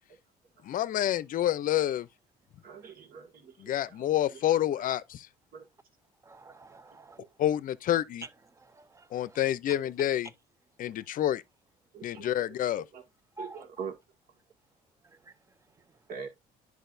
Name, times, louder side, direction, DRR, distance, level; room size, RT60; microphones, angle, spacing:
voice 1, 0.6-2.1 3.6-5.0 7.4-8.2 9.1-10.3 10.8-11.4 12.0-12.8, left 12 dB, 55° left, 0.6 m, -28 dB
voice 2, 2.6-4.6 5.5-5.7 7.2-7.3 9.8-10.1 10.9-11.0 11.9-13.0 13.4-13.9 16.1-16.3, right 6 dB, 60° right, 1.9 m, -44 dB
voice 3, 6.2-7.2 8.2-9.4 13.4-13.6 15.0-15.3 15.8-16.0, right 2 dB, 20° right, 0.6 m, -49 dB
10.5 x 4.7 x 2.6 m
cardioid pair, 110°, 17 cm